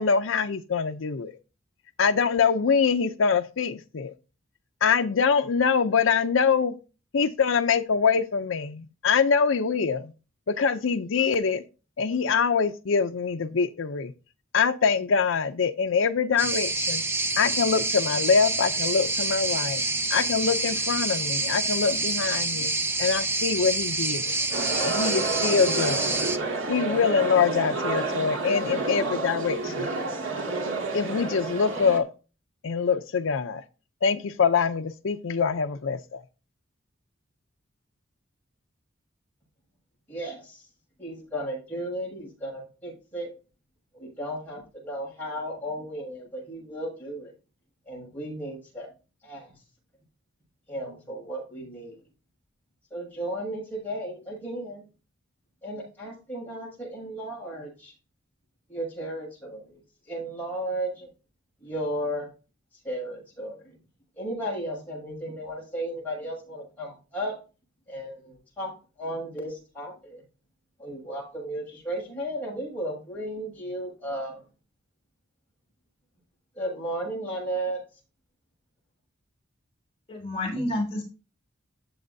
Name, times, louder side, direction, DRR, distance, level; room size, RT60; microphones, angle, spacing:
voice 1, 0.0-1.3 2.0-4.1 4.8-6.7 7.1-10.1 10.5-11.6 12.0-14.1 14.5-17.0 17.4-19.8 20.1-22.7 23.0-24.3 24.8-26.2 26.7-29.9 30.9-32.1 32.6-33.6 34.0-36.2, left 5 dB, 75° left, 0.6 m, -24 dB
sound 1, 16.4-26.4, right 3 dB, 10° right, 0.5 m, -27 dB
sound 2, 24.5-32.0, right 3 dB, 75° right, 2.2 m, -30 dB
voice 2, 40.1-40.7 41.0-43.3 43.9-47.3 47.9-48.9 49.2-49.5 50.7-52.0 52.9-54.8 55.6-57.9 58.7-61.1 61.6-62.3 62.8-63.8 64.2-67.3 67.9-68.7 69.0-70.2 70.8-74.4 76.5-77.8, right 1 dB, 10° left, 6.4 m, -34 dB
voice 3, 80.1-81.0, left 1 dB, 30° left, 3.5 m, -29 dB
12.5 x 7.9 x 2.7 m
head